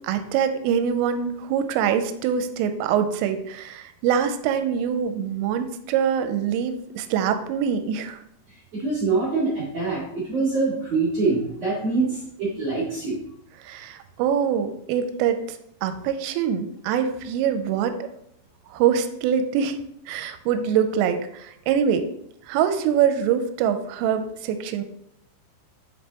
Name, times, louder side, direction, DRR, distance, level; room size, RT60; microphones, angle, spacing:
voice 1, 0.0-8.2 13.7-15.4 15.8-18.1 18.7-19.8 20.1-22.1 22.5-24.8, right 8 dB, 85° right, 8 dB, 3.1 m, -24 dB
voice 2, 8.7-13.2, right 3 dB, 45° right, -9 dB, 2.3 m, -24 dB
7.5 x 5.4 x 2.9 m, 0.75 s
omnidirectional pair, 5.7 m